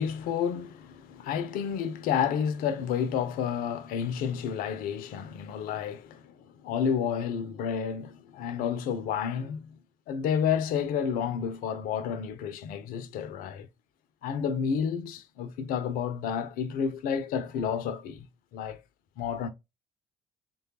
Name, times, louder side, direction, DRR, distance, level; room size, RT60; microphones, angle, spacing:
voice 1, 0.0-6.4 6.6-9.8 10.1-13.7 14.2-18.3 18.5-18.8 19.2-19.5, left 7 dB, 55° left, 0.5 m, -30 dB
3.2 x 2.3 x 2.7 m
figure-of-eight pair, 50°, 17 cm